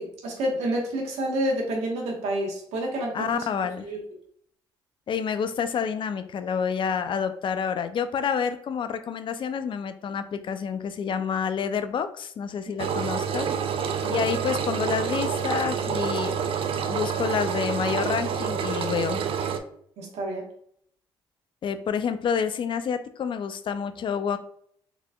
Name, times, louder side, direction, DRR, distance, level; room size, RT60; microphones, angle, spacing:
voice 1, 0.0-3.4 3.8-4.0 12.7-12.9 14.0-14.2 20.0-20.4, right 1 dB, 75° right, -1 dB, 1.3 m, -29 dB
voice 2, 3.1-3.9 5.1-13.5 14.1-16.4 16.9-19.2 21.6-24.4, left 7 dB, 50° left, 10 dB, 0.4 m, -28 dB
Engine, 12.8-19.6, right 7 dB, 55° right, 0.5 m, -28 dB
3.9 x 3.0 x 2.3 m, 0.64 s
hypercardioid pair, 55°, 11 cm